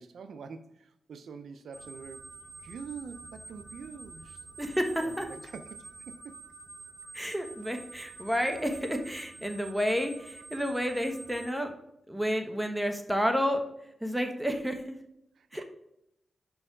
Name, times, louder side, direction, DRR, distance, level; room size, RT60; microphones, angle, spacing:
voice 1, 0.0-2.3 2.6-4.4 5.0-6.4 15.4-15.6, right 5 dB, 80° right, 10 dB, 0.4 m, -45 dB
sound 1, 1.7-11.5, right 3 dB, 45° right, 1.0 m, -48 dB
voice 2, 4.6-5.3 7.1-11.7 12.1-13.6 14.0-14.9 15.5-15.6, equal, 5° right, 5 dB, 1.2 m, -30 dB
5.3 x 4.6 x 4.9 m, 0.79 s
cardioid pair, 60°, 0 cm